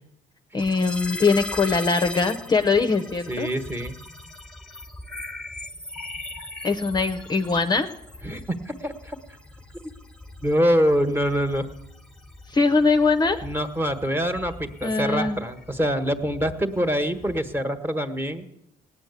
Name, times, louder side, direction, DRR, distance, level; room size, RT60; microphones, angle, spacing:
voice 1, 0.5-3.5 6.6-7.9 12.5-13.4 14.8-15.4, left 4 dB, 25° left, 7 dB, 0.8 m, -22 dB
sound 1, 0.6-17.6, left 2 dB, 5° left, 1.3 m, -40 dB
voice 2, 3.3-3.9 8.2-8.4 8.7-9.2 10.4-11.7 13.4-18.5, equal, 15° right, 7 dB, 1.4 m, -25 dB
18.0 x 9.9 x 8.3 m, 0.86 s
cardioid pair, 110°, 17 cm